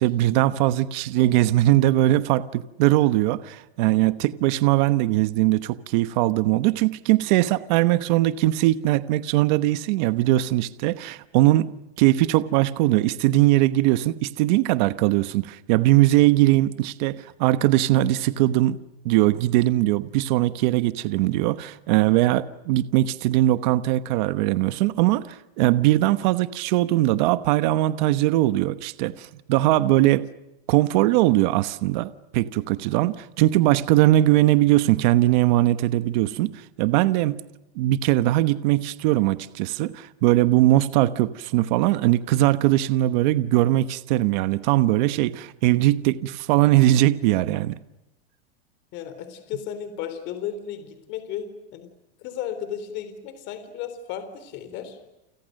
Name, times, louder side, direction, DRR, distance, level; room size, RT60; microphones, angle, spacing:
voice 1, 0.0-11.7 12.0-18.8 19.0-30.2 30.7-36.5 36.8-37.4 37.7-47.7, right 15 dB, 45° right, 13 dB, 1.1 m, -20 dB
voice 2, 48.9-51.9 52.2-55.0, left 9 dB, 35° left, 10 dB, 3.7 m, -34 dB
29.5 x 29.0 x 6.6 m, 0.93 s
supercardioid pair, 170°, 32 cm